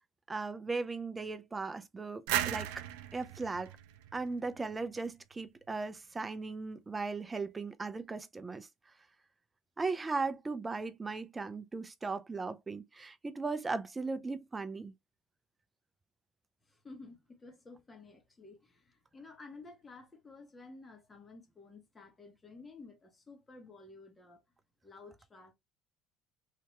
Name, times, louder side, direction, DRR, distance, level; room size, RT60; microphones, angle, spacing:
voice 1, 0.3-2.9 3.1-3.7 4.1-8.7 9.8-14.9, right 3 dB, 20° right, 0.6 m, -37 dB
sound 1, 2.3-5.0, right 12 dB, 85° right, 0.4 m, -36 dB
voice 2, 16.7-24.4 24.8-25.5, left 3 dB, 25° left, 1.4 m, -53 dB
3.4 x 2.8 x 3.0 m
supercardioid pair, 85°, 0 cm